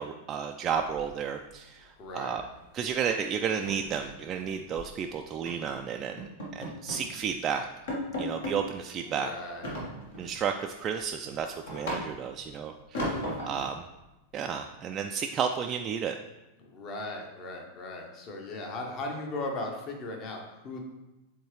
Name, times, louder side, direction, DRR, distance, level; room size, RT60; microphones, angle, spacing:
voice 1, 0.0-2.4 2.7-7.7 8.2-9.3 10.2-13.8 14.3-16.2, right 7 dB, 30° right, 4 dB, 0.3 m, -32 dB
sound 1, 0.7-1.5 1.8-2.1 2.4-2.6 2.9-3.0 3.4-4.9 5.5-5.7 6.2-7.1 7.5-7.6 7.9-8.6 9.6-10.4 10.8-12.4 12.9-13.7, equal, 60° left, 1.5 m, -36 dB
voice 2, 2.0-2.4 9.0-9.7 16.6-20.8, left 2 dB, 35° left, 2 dB, 1.1 m, -37 dB
7.6 x 3.9 x 3.2 m, 1.0 s
figure-of-eight pair, 90°, 0 cm